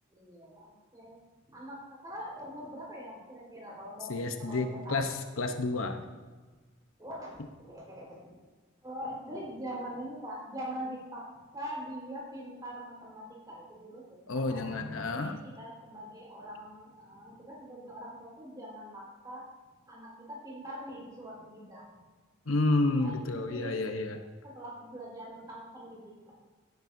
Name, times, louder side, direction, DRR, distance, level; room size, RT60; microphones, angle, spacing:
voice 1, 0.1-1.2 1.5-1.8 2.0-5.1 6.5-6.6 7.0-7.4 7.7-8.2 8.8-11.2 11.5-14.7 15.0-19.4 19.9-21.9 22.9-23.8 24.4-26.3, equal, 20° right, -4 dB, 4.2 m, -43 dB
voice 2, 4.1-6.0 14.3-15.4 22.5-24.2, left 2 dB, 80° left, 6 dB, 0.9 m, -30 dB
16.5 x 10.5 x 2.7 m, 1.3 s
head